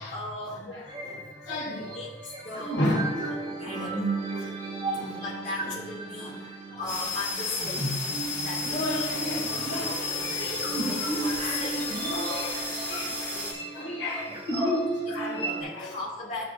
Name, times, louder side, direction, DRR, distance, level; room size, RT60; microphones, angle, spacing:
voice 1, 0.0-0.7 1.8-2.8 3.4-4.1 5.1-6.4 6.8-9.1 9.5-10.3 10.8-11.8 12.1-12.6 13.3-13.7 14.5-16.5, left 2 dB, 40° left, -6 dB, 2.3 m, -38 dB
voice 2, 0.6-2.0 2.5-3.4 3.7-3.9 4.4-4.5 4.9-5.2 5.6-5.7 6.2-6.4 6.7-6.9 8.6-10.9 11.4-14.5 15.1-15.9, left 1 dB, 80° left, -4 dB, 2.6 m, -34 dB
sound 1, 0.8-15.6, right 2 dB, 25° right, 2.4 m, -34 dB
sound 2, 6.9-13.5, left 3 dB, 20° left, 2.4 m, -33 dB
14.0 x 7.2 x 2.6 m, 1.2 s
head